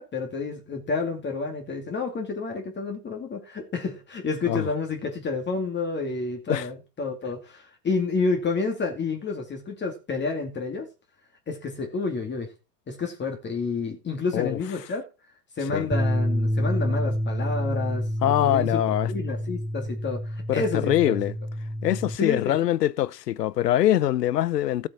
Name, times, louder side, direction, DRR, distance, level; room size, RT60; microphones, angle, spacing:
voice 1, 0.0-10.9 11.5-12.5 12.9-15.0 15.6-18.8 19.1-21.2 22.2-22.6, left 4 dB, 25° left, 2.3 m, -29 dB
sound 1, 15.9-22.2, equal, 5° right, 0.6 m, -28 dB
voice 2, 18.2-19.1 20.5-21.3 21.8-24.9, left 12 dB, 90° left, 0.7 m, -23 dB
13.5 x 7.7 x 4.2 m
hypercardioid pair, 100°, 47 cm